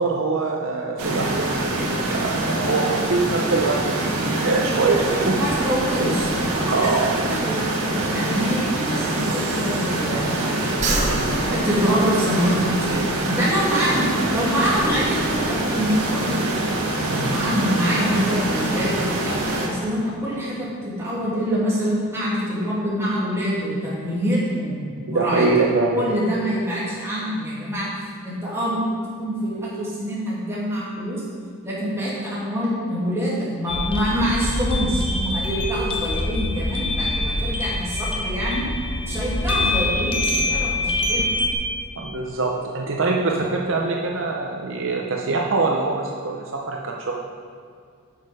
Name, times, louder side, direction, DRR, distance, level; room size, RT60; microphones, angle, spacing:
voice 1, 0.0-5.4 6.7-7.1 11.0-11.2 17.1-17.5 25.1-26.0 42.0-47.1, right 3 dB, 60° right, 0 dB, 0.7 m, -24 dB
sound 1, 1.0-19.7, right 2 dB, 85° right, 1.6 m, -24 dB
voice 2, 5.3-6.7 7.2-10.7 11.5-16.4 17.1-19.4 19.7-24.8 25.0-25.5 25.9-27.9 28.2-31.2 31.6-38.7 39.0-41.3, equal, 10° right, -8 dB, 2.3 m, -25 dB
Breathing, 7.6-10.4 10.7-12.7, right 2 dB, 30° right, 1.0 m, -29 dB
sound 2, 33.7-41.5, left 2 dB, 25° left, 0.7 m, -25 dB
8.8 x 6.5 x 4.9 m, 2.2 s
head